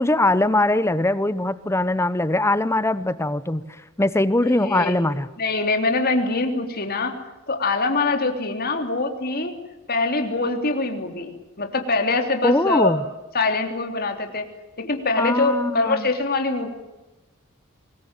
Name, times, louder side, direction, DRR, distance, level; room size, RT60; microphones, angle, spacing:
voice 1, 0.0-3.6 4.0-5.3 12.4-13.0 15.2-16.1, left 2 dB, 15° left, 15 dB, 0.9 m, -21 dB
voice 2, 4.6-4.9 5.4-7.2 7.5-9.6 9.9-13.0 13.3-14.4 14.8-16.7, left 3 dB, 45° left, 5 dB, 3.3 m, -23 dB
24.5 x 21.0 x 8.9 m, 1.0 s
head